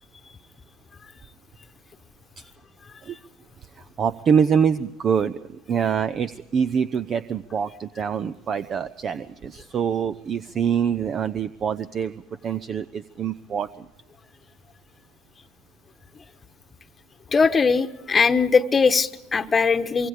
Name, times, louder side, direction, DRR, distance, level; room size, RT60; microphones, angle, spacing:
voice 1, 3.8-12.1 12.4-13.9, right 7 dB, 35° right, 14 dB, 0.7 m, -25 dB
voice 2, 17.3-20.1, left 5 dB, 25° left, 9 dB, 1.2 m, -20 dB
25.0 x 23.0 x 5.0 m, 0.90 s
hypercardioid pair, 70°, 0 cm